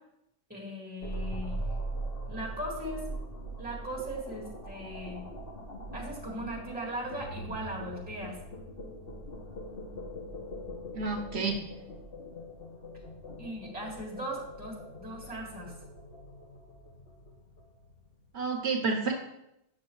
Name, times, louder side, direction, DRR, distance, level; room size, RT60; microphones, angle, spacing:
voice 1, 0.5-1.6 2.3-3.1 3.6-5.2 5.9-8.4 13.4-15.7, right 1 dB, 10° right, -5 dB, 2.0 m, -38 dB
sound 1, 1.0-18.3, right 1 dB, 60° left, 1.3 m, -41 dB
voice 2, 10.9-11.6 18.3-19.1, right 4 dB, 70° right, 2 dB, 1.0 m, -30 dB
8.7 x 6.3 x 3.0 m, 0.85 s
omnidirectional pair, 1.2 m